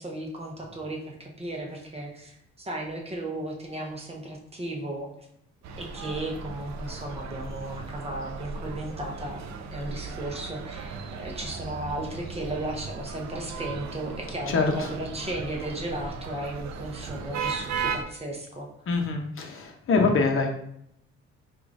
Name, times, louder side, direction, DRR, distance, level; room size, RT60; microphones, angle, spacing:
voice 1, 0.0-5.1 5.8-9.4 9.7-18.7, right 1 dB, 20° right, 0 dB, 0.7 m, -35 dB
sound 1, 5.6-18.0, right 5 dB, 65° right, 0.5 m, -36 dB
voice 2, 14.5-14.9 18.9-20.5, left 4 dB, 45° left, 2 dB, 0.8 m, -24 dB
4.8 x 2.5 x 2.5 m, 0.71 s
cardioid pair, 90°, 30 cm